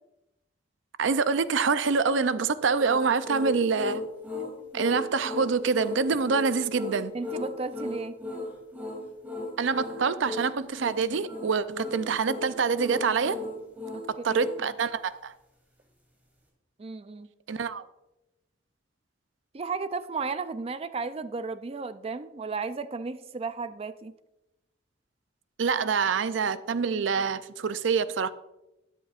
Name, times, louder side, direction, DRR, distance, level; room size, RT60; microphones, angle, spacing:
voice 1, 1.0-4.0 4.7-7.1 9.6-13.4 14.2-15.3 17.5-17.8 25.6-28.3, right 5 dB, 85° right, 0.5 m, -26 dB
sound 1, 2.7-14.6, left 2 dB, 10° right, 2.9 m, -36 dB
voice 2, 7.1-8.2 13.9-14.4 16.8-17.3 19.5-24.1, right 4 dB, 30° right, 0.4 m, -34 dB
13.0 x 9.8 x 2.5 m
head